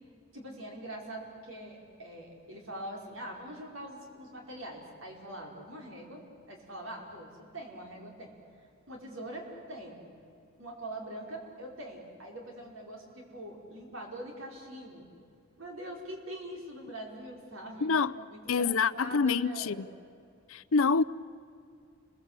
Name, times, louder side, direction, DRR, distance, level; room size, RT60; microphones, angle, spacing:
voice 1, 0.3-6.2 6.5-8.3 8.9-10.0 10.6-15.1 15.6-17.9 18.1-19.9, right 1 dB, 65° right, 5.1 m, -43 dB
voice 2, 17.8-18.1 18.5-19.9 20.5-21.0, left 5 dB, 70° left, 0.6 m, -26 dB
30.0 x 22.5 x 8.2 m
head